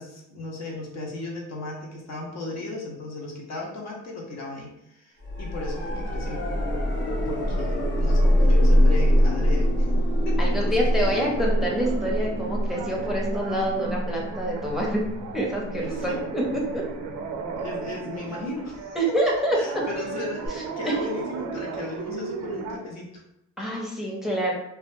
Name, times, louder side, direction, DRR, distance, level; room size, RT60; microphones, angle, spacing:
voice 1, 0.0-6.4 7.3-9.9 10.2-11.0 15.8-16.2 17.4-19.0 19.5-23.2 23.6-23.7, left 2 dB, 60° left, -2 dB, 0.8 m, -36 dB
sound 1, 5.2-18.1 20.5-20.6, equal, 40° left, 0.8 m, -24 dB
voice 2, 10.4-15.0 15.3-16.4 16.7-16.8 18.9-19.6 20.5-20.9 23.6-24.5, right 1 dB, ahead, -3 dB, 0.6 m, -27 dB
sound 2, 11.4-22.8, right 5 dB, 75° right, 0.5 m, -36 dB
2.8 x 2.2 x 2.6 m, 0.84 s
cardioid pair, 90°, 30 cm